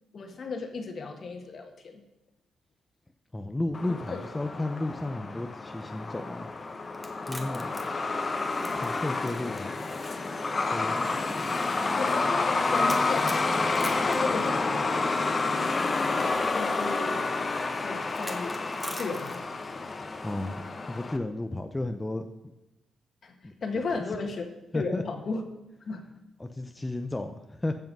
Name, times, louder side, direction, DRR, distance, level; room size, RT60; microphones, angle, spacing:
voice 1, 0.1-2.0 4.1-4.2 11.8-13.6 14.0-15.0 16.5-17.2 17.8-18.7 18.9-19.4 23.2-24.5 24.7-25.4 25.9-26.0, left 4 dB, 50° left, 5 dB, 1.7 m, -35 dB
voice 2, 3.3-6.5 7.3-7.8 8.7-9.8 10.7-11.0 20.2-20.6 20.9-22.3 23.4-23.5 24.7-25.0 26.4-27.8, left 2 dB, 15° left, 6 dB, 0.6 m, -33 dB
Truck, 3.7-21.2, left 3 dB, 30° left, 1.0 m, -29 dB
sound 1, 6.9-9.6 9.9-10.0 10.9-11.0 12.9-15.0 16.1-16.2 18.1-19.6, equal, 5° right, 1.5 m, -42 dB
15.0 x 5.7 x 5.4 m, 0.98 s
cardioid pair, 105°, 0 cm